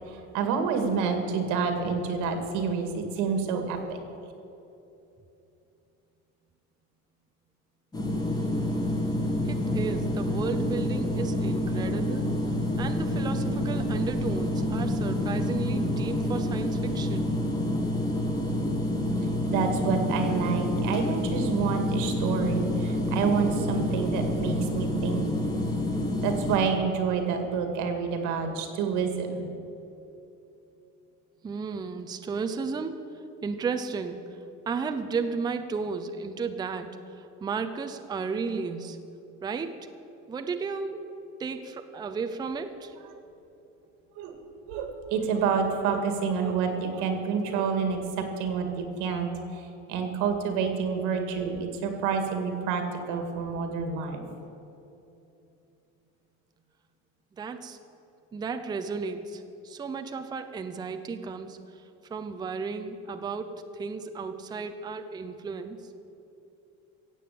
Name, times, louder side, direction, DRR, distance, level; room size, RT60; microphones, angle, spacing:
voice 1, 0.1-3.8 19.4-25.3 26.2-29.5 44.2-44.4 44.7-54.2, right 6 dB, 90° right, 5 dB, 2.2 m, -28 dB
sound 1, 7.9-26.6, left 1 dB, 15° left, 1.6 m, -28 dB
voice 2, 9.4-12.3 12.8-17.3 31.4-33.0 33.4-34.2 34.7-39.0 39.4-39.8 40.3-41.1 41.4-42.9 57.3-57.8 58.3-61.6 62.1-65.8, right 5 dB, 15° right, 7 dB, 0.5 m, -34 dB
16.0 x 7.7 x 8.4 m, 2.9 s
cardioid pair, 175°, 29 cm